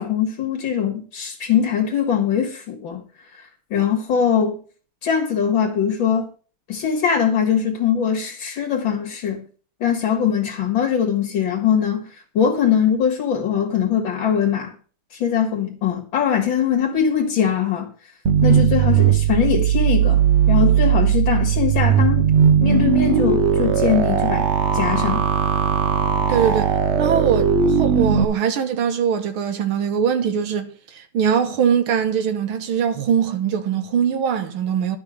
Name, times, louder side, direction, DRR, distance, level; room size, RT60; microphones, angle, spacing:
voice 1, 0.0-3.0 3.3-4.6 5.0-6.3 6.7-9.4 9.8-14.7 15.1-17.9 18.4-20.2 20.5-22.3 22.6-25.3, left 8 dB, 65° left, 2.5 m, -21 dB
sound 1, 18.2-28.2, right 8 dB, 50° right, 0.9 m, -18 dB
voice 2, 26.3-35.0, right 7 dB, 75° right, 2.0 m, -22 dB
11.5 x 5.9 x 6.6 m
omnidirectional pair, 2.4 m